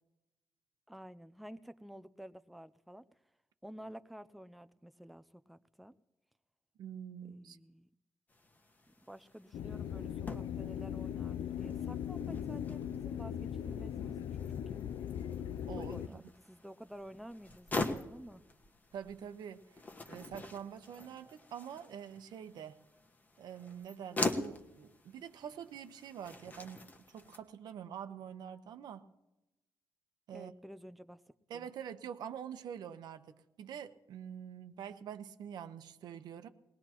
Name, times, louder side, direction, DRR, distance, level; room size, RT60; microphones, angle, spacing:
voice 1, 0.9-3.1 3.6-6.0 7.2-7.9 8.9-14.8 15.8-18.4 30.3-31.2 31.5-31.7, equal, ahead, 12 dB, 0.4 m, -51 dB
voice 2, 6.8-7.6 15.7-16.2 18.9-22.8 23.4-29.1 30.3-30.5 31.5-36.5, right 8 dB, 90° right, 9 dB, 1.0 m, -46 dB
sound 1, 8.3-27.4, left 2 dB, 25° left, 1.2 m, -44 dB
sound 2, 9.5-16.1, left 9 dB, 75° left, 0.4 m, -39 dB
21.0 x 19.0 x 3.0 m, 0.96 s
wide cardioid pair, 145°, 7 cm